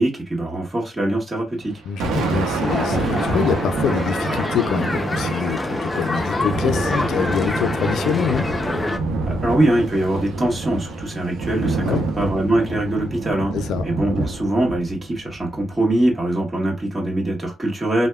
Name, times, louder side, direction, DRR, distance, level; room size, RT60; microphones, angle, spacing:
voice 1, 0.0-1.8 9.3-13.5 13.8-18.1, right 1 dB, 25° right, 1.5 m, -22 dB
Thunder, 1.6-16.2, right 3 dB, 80° right, 0.7 m, -27 dB
voice 2, 1.9-8.6 11.8-12.0 13.5-13.9, left 8 dB, 80° left, 0.3 m, -25 dB
sound 1, 2.6-9.0, left 2 dB, 20° left, 0.6 m, -25 dB
3.3 x 2.1 x 2.3 m
cardioid pair, 90°, 0 cm